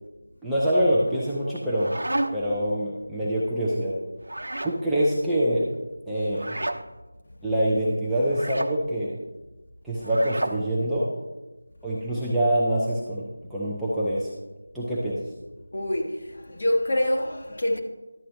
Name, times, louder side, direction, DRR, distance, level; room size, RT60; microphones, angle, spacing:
voice 1, 0.4-1.9 2.3-4.0 4.6-5.7 6.1-6.6 7.4-9.2 9.8-11.1 11.8-14.3 14.7-15.3, equal, ahead, 0.5 m, -25 dB
sound 1, 1.5-2.6 4.2-4.8 6.3-6.8 8.3-8.7 10.0-10.6, right 1 dB, 90° right, 0.8 m, -31 dB
voice 2, 15.7-17.8, left 1 dB, 40° left, 1.3 m, -26 dB
11.5 x 8.8 x 3.2 m
figure-of-eight pair, 175°, 0 cm